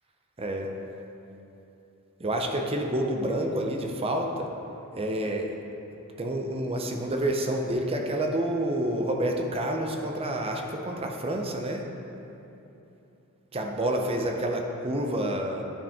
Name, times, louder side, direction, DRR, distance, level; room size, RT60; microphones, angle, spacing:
voice 1, 0.4-0.7 2.2-4.5 4.9-5.5 6.2-11.8 13.5-15.6, right 1 dB, 25° right, 2 dB, 0.6 m, -28 dB
10.0 x 5.1 x 3.5 m, 2.9 s
head